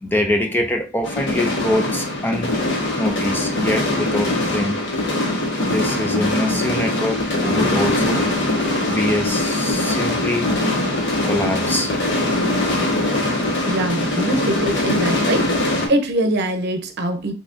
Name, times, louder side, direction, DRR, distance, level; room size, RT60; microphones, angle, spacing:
voice 1, 0.0-2.6 3.0-4.8 5.6-8.3 8.9-10.5 11.2-12.0, left 1 dB, 10° left, 0.4 m, -24 dB
sound 1, 1.0-15.9, left 1 dB, 60° left, 1.2 m, -22 dB
voice 2, 13.7-15.5 15.9-17.3, right 1 dB, 55° right, 0.7 m, -22 dB
5.7 x 3.2 x 2.6 m
head